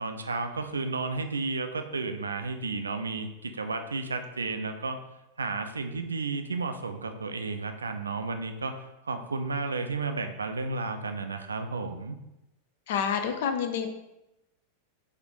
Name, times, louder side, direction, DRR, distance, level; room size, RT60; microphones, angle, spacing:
voice 1, 0.0-5.0 5.4-12.2, right 3 dB, 75° right, 7 dB, 0.3 m, -32 dB
voice 2, 12.9-13.9, left 7 dB, 55° left, 7 dB, 0.4 m, -28 dB
4.1 x 2.6 x 3.1 m, 0.92 s
figure-of-eight pair, 90°, 0 cm